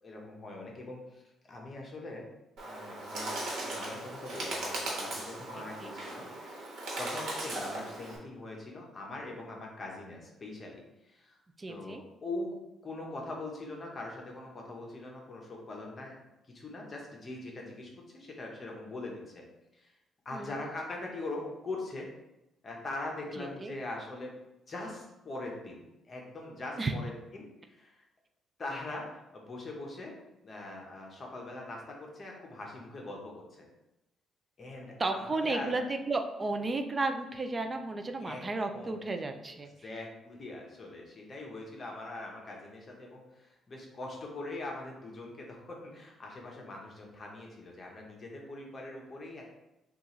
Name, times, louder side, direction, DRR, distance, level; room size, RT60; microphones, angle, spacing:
voice 1, 0.0-2.2 2.6-6.3 7.0-11.4 11.7-12.6 12.8-16.2 16.5-19.4 19.7-20.0 20.2-22.1 22.6-24.3 24.7-28.0 28.6-30.1 30.4-33.6 34.6-35.8 38.2-38.4 38.7-39.0 39.5-49.5, left 2 dB, 30° left, -1 dB, 0.8 m, -42 dB
Bird, 2.6-8.2, right 1 dB, 60° right, 1.2 m, -38 dB
voice 2, 5.6-5.9 11.6-12.0 20.3-20.5 23.4-23.7 26.8-26.9 35.0-39.7, right 3 dB, 20° right, 6 dB, 0.4 m, -33 dB
6.0 x 2.4 x 3.0 m, 0.93 s
cardioid pair, 155°, 0 cm